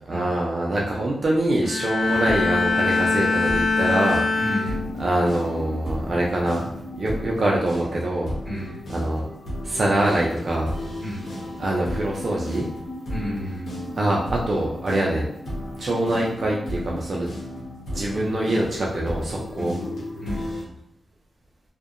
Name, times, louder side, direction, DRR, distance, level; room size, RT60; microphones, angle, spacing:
voice 1, 0.1-4.2 5.0-6.6 7.0-8.3 8.9-9.2 9.6-10.7 11.6-12.7 14.0-15.3 15.8-17.3 17.9-19.8, right 1 dB, 40° right, -3 dB, 0.4 m, -24 dB
Bowed string instrument, 1.6-5.2 5.7-6.0, left 3 dB, 50° left, 0.4 m, -23 dB
sound 1, 2.0-20.6, left 1 dB, 75° left, 0.9 m, -34 dB
voice 2, 4.4-5.0 8.4-8.8 11.0-11.3 13.1-13.8 18.1-18.4 19.6-20.5, equal, 15° left, -9 dB, 1.5 m, -33 dB
2.6 x 2.1 x 2.4 m, 0.71 s
wide cardioid pair, 135°, 0 cm